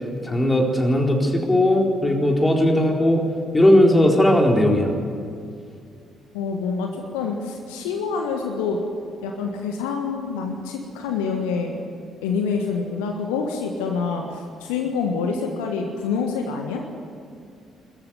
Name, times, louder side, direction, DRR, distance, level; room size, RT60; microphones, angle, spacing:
voice 1, 0.2-3.2 3.5-4.9, left 1 dB, 15° left, 0 dB, 4.1 m, -18 dB
voice 2, 6.3-8.8 9.2-11.8 12.2-16.8, left 5 dB, 70° left, 3 dB, 1.5 m, -26 dB
22.0 x 14.5 x 9.9 m, 2.3 s
figure-of-eight pair, 45°, 0 cm